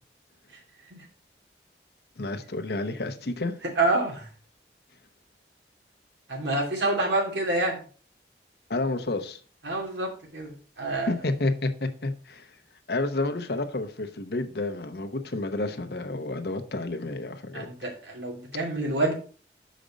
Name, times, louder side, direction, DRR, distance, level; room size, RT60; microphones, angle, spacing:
voice 1, 2.2-3.6 8.7-9.4 11.1-12.6 12.9-17.7, left 2 dB, 65° left, 0.9 m, -30 dB
voice 2, 3.8-4.3 6.3-7.8 9.6-10.5 10.8-11.1 17.5-19.1, right 2 dB, 90° right, 2.6 m, -27 dB
6.6 x 5.1 x 5.1 m
head